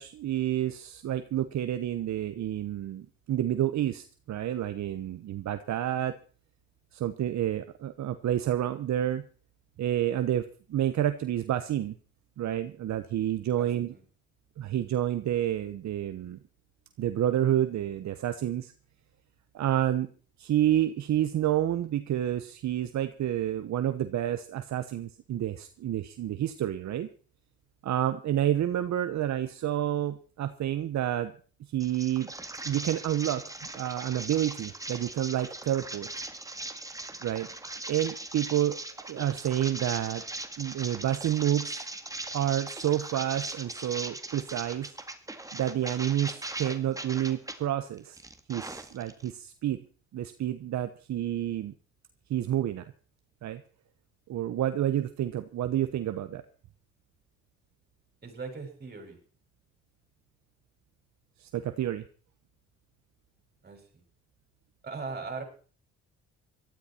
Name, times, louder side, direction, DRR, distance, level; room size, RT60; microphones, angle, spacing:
voice 1, 0.0-6.1 6.9-9.2 9.8-12.0 12.4-13.9 14.6-16.4 17.0-18.7 19.5-20.1 20.4-27.1 27.8-31.3 31.7-32.3 32.6-36.1 37.2-37.5 37.9-38.8 39.1-40.2 40.6-41.8 42.3-44.9 45.5-48.2 48.5-49.8 50.1-51.7 52.3-52.8 53.4-53.6 54.3-56.4 61.4-62.0, right 12 dB, 65° right, 10 dB, 1.0 m, -29 dB
voice 2, 13.6-14.0 58.2-59.2 63.6-64.0 64.8-65.4, right 4 dB, 35° right, 4 dB, 6.4 m, -39 dB
sound 1, 31.8-47.6 48.0-49.3, right 2 dB, 10° right, 2.0 m, -39 dB
18.5 x 13.0 x 4.4 m, 0.40 s
cardioid pair, 90°, 30 cm